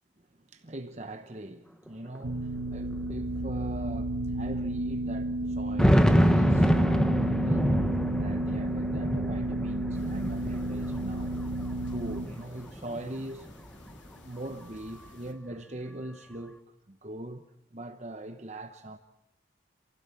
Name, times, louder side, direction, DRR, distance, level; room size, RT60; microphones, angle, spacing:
voice 1, 0.2-11.4 11.9-13.5 14.2-16.6 16.9-17.4 17.7-19.0, right 1 dB, 35° right, 1.0 m, -41 dB
sound 1, 1.9-2.0 2.2-2.3 3.1-3.2 3.7-3.8 5.4-11.8 12.2-13.2, equal, 5° left, 0.8 m, -26 dB
sound 2, 2.2-12.3, right 1 dB, 75° right, 1.1 m, -32 dB
sound 3, 9.9-15.3, left 1 dB, 80° left, 3.1 m, -53 dB
27.5 x 16.5 x 8.5 m
head